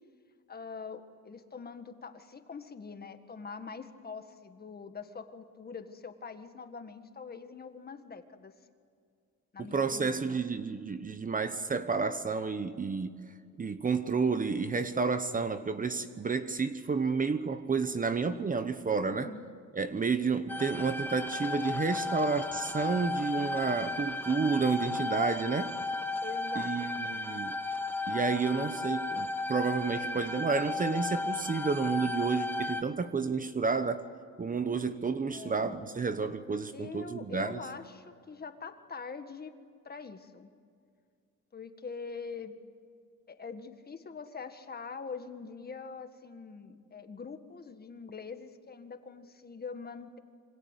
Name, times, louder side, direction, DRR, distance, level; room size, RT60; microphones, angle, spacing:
voice 1, 0.5-8.5 9.5-10.4 19.1-19.4 26.2-27.2 34.7-34.9 35.3-35.9 36.7-39.5 39.8-40.5 41.5-42.5 43.3-50.2, left 5 dB, 30° left, 1.7 m, -44 dB
voice 2, 9.7-13.2 13.6-19.3 19.7-25.8 26.5-27.5 28.1-34.0 34.4-37.6, right 4 dB, 25° right, 1.1 m, -30 dB
sound 1, 20.5-32.8, left 3 dB, 5° left, 1.2 m, -34 dB
27.0 x 25.5 x 8.2 m
cardioid pair, 125°, 31 cm